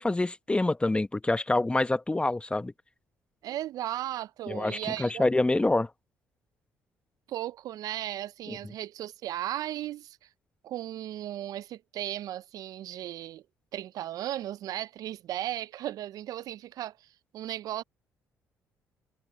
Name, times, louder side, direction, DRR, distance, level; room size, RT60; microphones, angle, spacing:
voice 1, 0.0-2.7 4.5-5.9 8.5-8.6, left 2 dB, 15° left, 0.9 m, -26 dB
voice 2, 3.4-5.3 7.3-10.3 10.6-13.4 13.7-17.1 17.3-17.8, right 13 dB, 65° right, 0.4 m, -36 dB
supercardioid pair, 60°, 7 cm